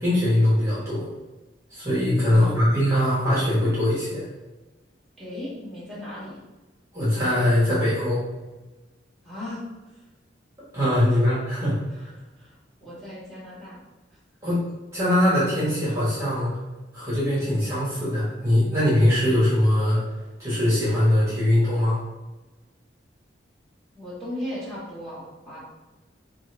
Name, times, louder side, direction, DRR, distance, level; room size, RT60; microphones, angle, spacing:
voice 1, 0.0-1.0 1.7-4.2 6.9-8.2 10.7-12.1 14.4-14.6 14.9-16.5 16.9-20.0 20.4-22.0, left 1 dB, 15° right, -9 dB, 1.2 m, -21 dB
voice 2, 2.4-2.9 5.2-6.4 9.2-9.6 11.1-11.2 12.2-12.6 12.8-13.8 14.4-14.6 23.9-25.6, left 1 dB, ahead, -9 dB, 1.3 m, -37 dB
4.8 x 2.5 x 3.3 m, 1.1 s
head